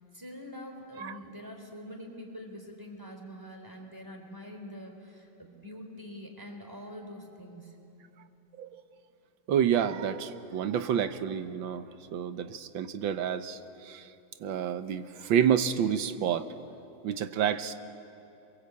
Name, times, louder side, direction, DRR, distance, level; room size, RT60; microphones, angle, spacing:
voice 1, 0.1-7.7, equal, 10° right, 2 dB, 3.6 m, -45 dB
voice 2, 9.5-11.9 12.1-14.1 14.4-16.5 17.0-17.7, right 8 dB, 90° right, 10 dB, 1.7 m, -29 dB
28.0 x 22.5 x 8.4 m, 2.8 s
omnidirectional pair, 2.0 m